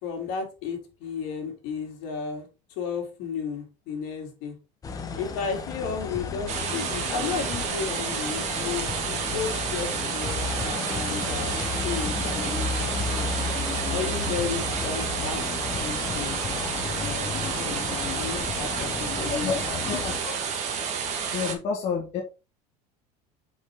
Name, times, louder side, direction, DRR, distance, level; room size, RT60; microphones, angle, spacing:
voice 1, 0.0-2.5 2.8-4.6 5.2-13.3 13.9-15.4 15.8-16.4 17.0-19.6, left 6 dB, 70° left, 2.9 m, -34 dB
sound 1, 4.8-20.2, left 4 dB, 20° left, 1.0 m, -33 dB
sound 2, 6.5-21.5, right 6 dB, 45° right, 1.6 m, -30 dB
voice 2, 19.3-20.1 21.3-22.2, left 6 dB, 40° left, 1.3 m, -29 dB
6.4 x 5.5 x 3.6 m
cardioid pair, 160°, 16 cm